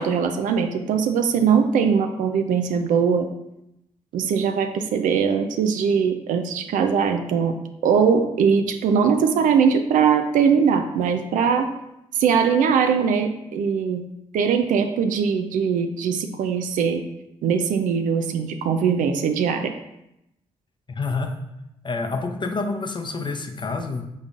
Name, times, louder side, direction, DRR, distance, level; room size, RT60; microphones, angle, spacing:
voice 1, 0.0-3.3 4.1-7.6 7.8-11.7 12.2-14.0 14.3-17.0 17.4-19.7, right 6 dB, 75° right, 7 dB, 0.4 m, -21 dB
voice 2, 20.9-21.4 21.8-24.1, left 3 dB, 35° left, 5 dB, 0.6 m, -28 dB
5.2 x 3.9 x 2.4 m, 0.86 s
supercardioid pair, 45°, 14 cm